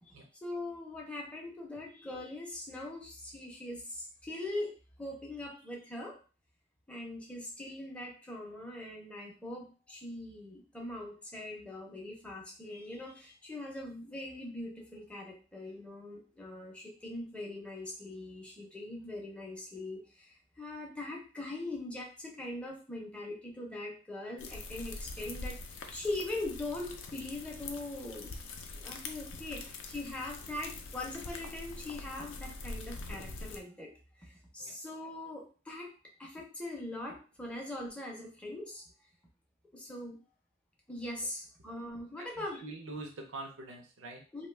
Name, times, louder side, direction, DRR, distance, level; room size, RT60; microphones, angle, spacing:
voice 1, 0.0-4.7 5.0-6.2 6.9-25.6 25.9-28.3 28.8-33.9 34.2-35.9 36.2-38.8 39.7-40.2 40.9-42.6 44.3-44.5, left 2 dB, 5° left, -1 dB, 0.5 m, -41 dB
sound 1, 24.4-33.6, left 3 dB, 85° left, 0.4 m, -44 dB
voice 2, 42.2-44.2, right 2 dB, 85° right, 2 dB, 0.6 m, -44 dB
2.6 x 2.2 x 3.2 m, 0.37 s
head